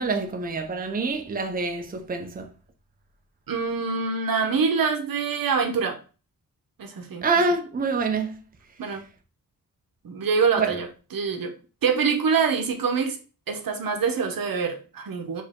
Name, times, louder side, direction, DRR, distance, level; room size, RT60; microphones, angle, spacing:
voice 1, 0.0-2.5 7.2-8.4 10.6-10.8, right 3 dB, 25° right, 0.6 m, -26 dB
voice 2, 3.5-6.0 6.8-7.2 8.8-9.0 10.0-10.9 11.1-11.5 11.8-13.2 13.5-15.4, right 5 dB, 85° right, 0.8 m, -25 dB
4.4 x 2.9 x 3.5 m
wide cardioid pair, 145°, 34 cm